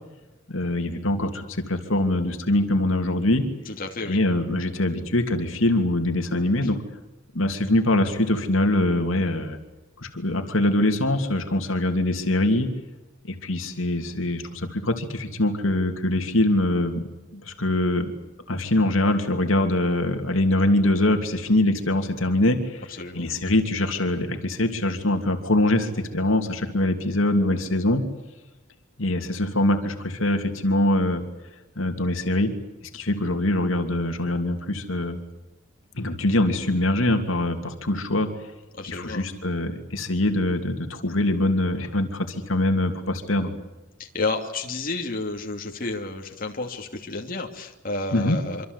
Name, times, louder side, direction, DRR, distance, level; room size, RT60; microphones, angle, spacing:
voice 1, 0.5-3.5 4.0-6.8 7.3-9.6 10.0-12.7 13.3-17.1 17.3-18.1 18.5-28.0 29.0-31.2 31.8-32.5 32.9-35.2 35.9-38.3 38.9-43.5 48.1-48.4, left 1 dB, 75° left, 5 dB, 2.8 m, -23 dB
voice 2, 3.6-4.2 23.0-23.3 38.8-39.3 44.0-48.7, left 3 dB, 45° left, 2 dB, 2.8 m, -31 dB
26.0 x 25.5 x 8.2 m, 1.0 s
head